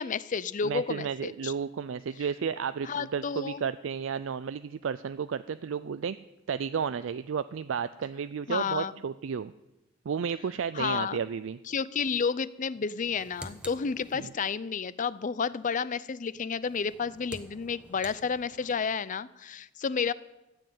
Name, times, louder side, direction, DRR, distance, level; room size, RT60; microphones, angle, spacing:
voice 1, 0.0-1.5 2.8-3.6 8.5-8.9 10.7-11.2 11.7-20.1, left 6 dB, 40° left, 18 dB, 0.5 m, -31 dB
voice 2, 0.6-6.2 6.5-9.5 10.1-11.6 14.1-14.3, right 6 dB, 75° right, 13 dB, 0.4 m, -32 dB
sound 1, 12.9-14.6 16.6-18.9, right 1 dB, 5° right, 1.0 m, -48 dB
13.5 x 7.8 x 9.1 m, 0.97 s
head